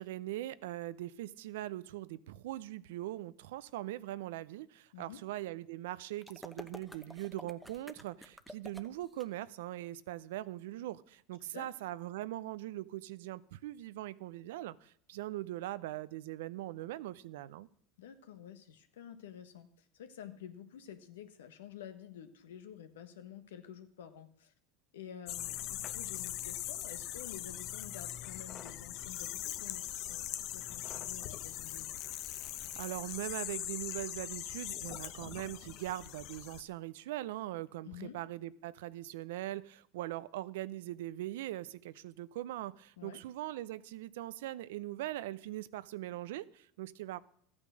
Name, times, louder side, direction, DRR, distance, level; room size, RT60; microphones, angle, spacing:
voice 1, 0.0-17.7 32.8-47.2, right 15 dB, 80° right, 18 dB, 0.5 m, -41 dB
sound 1, 6.2-9.2, equal, ahead, 0.9 m, -50 dB
voice 2, 18.0-24.5 24.9-32.0 37.8-38.2 43.0-43.2, left 9 dB, 90° left, 9 dB, 1.3 m, -50 dB
sound 2, 25.3-36.6, left 13 dB, 60° left, 0.8 m, -41 dB
sound 3, 25.4-32.8, left 7 dB, 35° left, 1.0 m, -55 dB
13.5 x 8.6 x 6.3 m, 0.62 s
hypercardioid pair, 95°, 0 cm